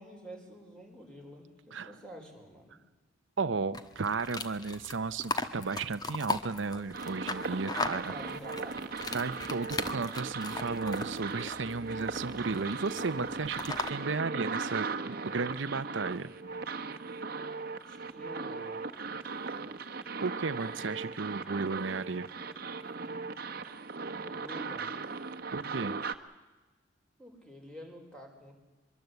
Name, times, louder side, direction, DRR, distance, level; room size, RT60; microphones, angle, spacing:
voice 1, 0.0-2.8 7.7-8.9 17.9-18.9 24.2-25.0 27.2-28.5, right 1 dB, 5° left, 2 dB, 4.8 m, -48 dB
voice 2, 3.4-8.1 9.1-16.3 20.2-22.3 25.5-25.9, right 4 dB, 70° right, 12 dB, 0.7 m, -34 dB
sound 1, 3.7-13.9, left 3 dB, 20° left, 1.2 m, -39 dB
sound 2, 6.9-26.1, right 4 dB, 50° right, 1.3 m, -38 dB
24.0 x 23.0 x 8.1 m, 1.2 s
head